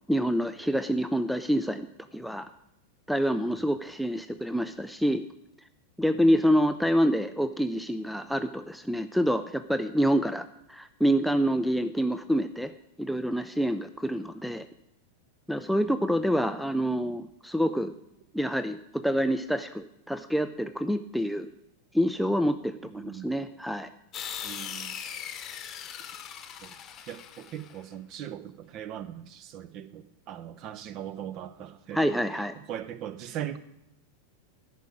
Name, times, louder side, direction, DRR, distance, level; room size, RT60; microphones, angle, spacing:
voice 1, 0.1-1.9 2.1-2.5 3.1-5.2 6.0-12.7 13.0-14.7 15.5-17.9 18.3-21.5 21.9-23.9 31.9-32.5, equal, ahead, 9 dB, 0.4 m, -27 dB
voice 2, 22.8-23.3 24.4-24.9 26.6-26.8 27.1-32.0 32.7-33.6, right 10 dB, 40° right, 13 dB, 0.8 m, -40 dB
sound 1, 24.1-27.8, left 8 dB, 30° left, 1.0 m, -39 dB
10.5 x 6.0 x 8.8 m, 0.81 s
figure-of-eight pair, 90°, 0 cm